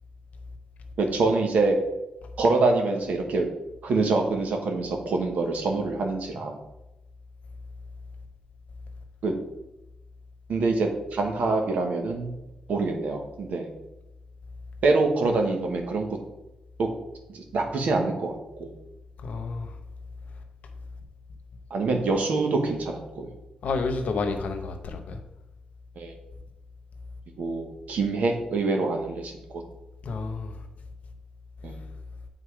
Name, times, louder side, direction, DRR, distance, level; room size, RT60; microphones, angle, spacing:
voice 1, 1.0-1.7 2.4-3.5 3.8-6.6 9.2-9.3 10.5-12.3 12.7-13.7 14.8-16.2 16.8-16.9 17.3-18.7 21.7-23.3 26.0-26.1 27.4-29.4 31.6-31.7, right 3 dB, 75° right, 3 dB, 1.3 m, -25 dB
voice 2, 19.2-19.7 23.6-25.2 30.1-30.5, left 4 dB, 70° left, 6 dB, 1.0 m, -29 dB
8.1 x 4.0 x 4.9 m, 0.92 s
wide cardioid pair, 115°, 3 cm